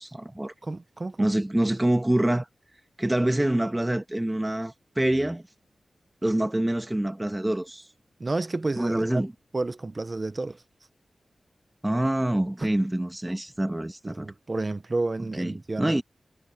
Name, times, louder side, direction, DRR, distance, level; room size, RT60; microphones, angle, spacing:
voice 1, 0.0-0.5 1.2-2.5 3.0-5.4 6.2-7.8 8.8-9.3 11.8-14.3 15.4-16.0, right 1 dB, 15° right, 1.6 m, -26 dB
voice 2, 0.6-1.3 8.2-9.3 9.5-10.6 12.6-12.7 14.0-16.0, right 2 dB, 35° right, 0.9 m, -31 dB
wide cardioid pair, 85°, 0 cm